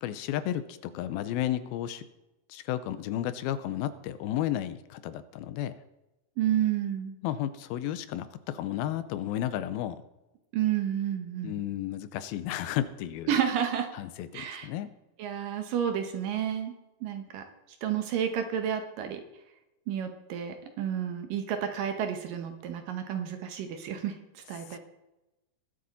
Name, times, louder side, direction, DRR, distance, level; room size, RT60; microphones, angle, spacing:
voice 1, 0.0-2.0 2.5-5.8 7.2-10.0 11.4-13.4 13.9-14.9 24.7-24.8, left 12 dB, 85° left, 13 dB, 2.5 m, -33 dB
voice 2, 6.4-7.1 10.5-11.6 13.3-13.9 14.3-14.7 15.2-16.7 17.0-17.4 17.8-19.2 19.9-24.8, right 9 dB, 70° right, 6 dB, 2.4 m, -30 dB
21.0 x 7.8 x 4.1 m, 0.97 s
omnidirectional pair, 4.5 m